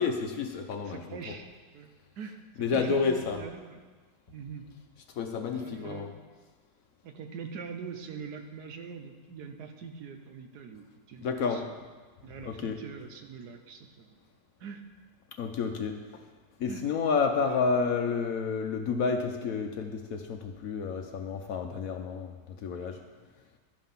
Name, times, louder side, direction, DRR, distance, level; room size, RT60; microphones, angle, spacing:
voice 1, 0.0-1.3 2.6-3.4 5.1-6.1 11.2-11.7 12.4-12.8 15.3-16.3 16.6-23.0, left 5 dB, 65° left, 5 dB, 1.0 m, -30 dB
voice 2, 0.8-1.5 1.7-2.4 2.7-3.8 4.3-4.6 5.5-6.2 7.0-11.7 12.2-14.2 14.6-14.8 16.7-16.8 17.4-18.0, right 6 dB, 70° right, 5 dB, 1.3 m, -43 dB
11.5 x 5.6 x 5.6 m, 1.4 s
omnidirectional pair, 1.8 m